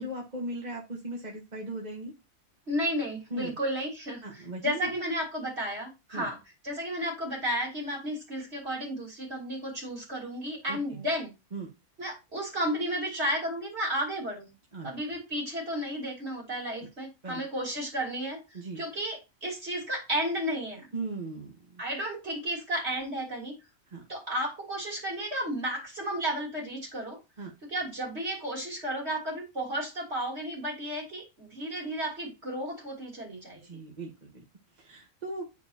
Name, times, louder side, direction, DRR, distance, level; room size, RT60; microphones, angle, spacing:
voice 1, 0.0-2.1 3.3-3.5 4.2-4.9 6.1-6.3 10.7-11.0 11.5-11.7 14.7-15.0 17.2-17.4 18.5-18.8 20.9-21.8 23.9-24.0 27.4-27.5 33.6-34.4 34.8-35.5, right 2 dB, 35° right, 1.3 m, -38 dB
voice 2, 2.7-6.4 6.6-11.3 12.0-14.5 14.8-18.4 18.8-20.9 21.8-23.5 24.1-27.2 27.7-33.6, equal, 50° right, 3.4 m, -33 dB
10.0 x 4.8 x 2.8 m
omnidirectional pair, 1.4 m